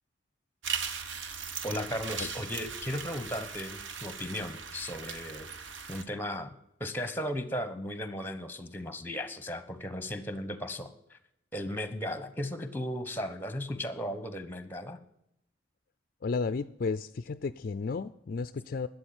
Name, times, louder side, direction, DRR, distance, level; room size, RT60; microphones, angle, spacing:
sound 1, 0.6-6.0, right 6 dB, 75° right, 1.2 m, -39 dB
voice 1, 1.6-5.5 5.9-6.5 6.8-11.2 11.5-15.0, left 1 dB, 10° left, 11 dB, 1.1 m, -36 dB
voice 2, 16.2-18.9, left 4 dB, 50° left, 13 dB, 0.4 m, -33 dB
12.5 x 8.2 x 8.7 m, 0.82 s
head